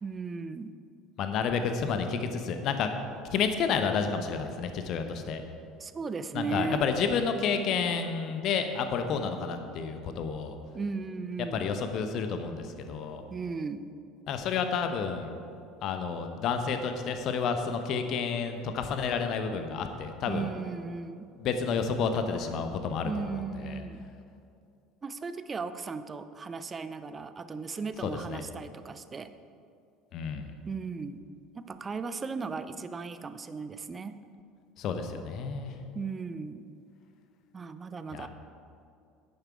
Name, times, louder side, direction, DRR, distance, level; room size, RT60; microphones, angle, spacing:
voice 1, 0.0-0.7 5.8-6.8 10.7-11.7 13.3-13.8 20.2-21.3 23.0-24.1 25.0-29.3 30.7-31.2 31.6-34.2 35.9-36.6 37.5-38.3, right 4 dB, 25° right, 12 dB, 0.6 m, -36 dB
voice 2, 1.2-2.9 3.3-5.4 6.3-10.6 11.5-13.2 14.3-15.3 15.8-20.5 21.4-23.8 28.0-28.4 30.1-30.5 34.8-35.7 38.1-38.3, left 6 dB, 45° left, 7 dB, 1.0 m, -30 dB
10.5 x 9.6 x 4.7 m, 2.4 s
figure-of-eight pair, 65°, 0 cm